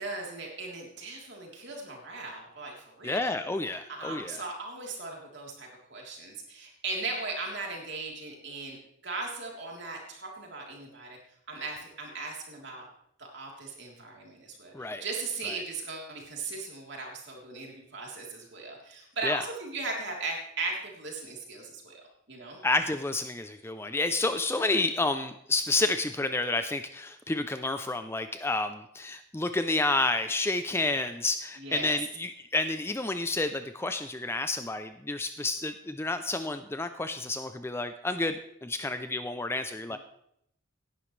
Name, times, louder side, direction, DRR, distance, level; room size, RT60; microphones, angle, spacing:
voice 1, 0.0-3.3 3.9-8.8 9.0-11.2 11.5-12.9 13.3-22.0 22.3-22.6 31.6-32.0 39.9-40.0, right 3 dB, 55° right, -1 dB, 3.5 m, -38 dB
voice 2, 3.0-4.4 14.7-15.0 19.2-19.4 22.6-40.0, left 2 dB, 10° left, 9 dB, 0.4 m, -30 dB
17.5 x 11.0 x 3.3 m, 0.73 s
head